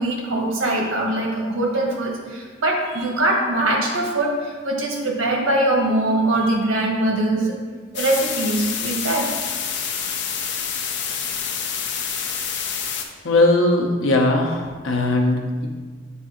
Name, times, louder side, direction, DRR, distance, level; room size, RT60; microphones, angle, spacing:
voice 1, 0.0-7.5 7.9-9.2, right 1 dB, 90° right, -1 dB, 1.3 m, -22 dB
sound 1, 7.9-13.0, left 7 dB, 60° left, 0.6 m, -27 dB
voice 2, 13.2-15.7, left 2 dB, 90° left, 1 dB, 0.8 m, -19 dB
7.2 x 2.7 x 5.0 m, 1.5 s
head